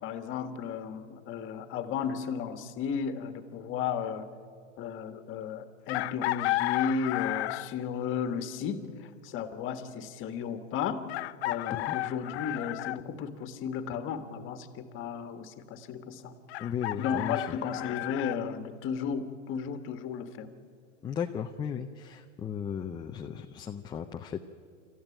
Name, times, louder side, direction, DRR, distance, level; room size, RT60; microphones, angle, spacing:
voice 1, 0.0-4.3 4.8-11.0 11.4-16.3 17.0-20.5, left 7 dB, 30° left, 9 dB, 1.6 m, -34 dB
Chicken rooster, 5.9-7.8 9.5-9.6 11.1-13.0 16.5-18.4, left 17 dB, 60° left, 0.7 m, -32 dB
voice 2, 16.6-17.5 21.0-24.4, left 8 dB, 10° left, 4 dB, 0.5 m, -35 dB
27.5 x 14.5 x 9.2 m, 2.3 s
hypercardioid pair, 130°, 38 cm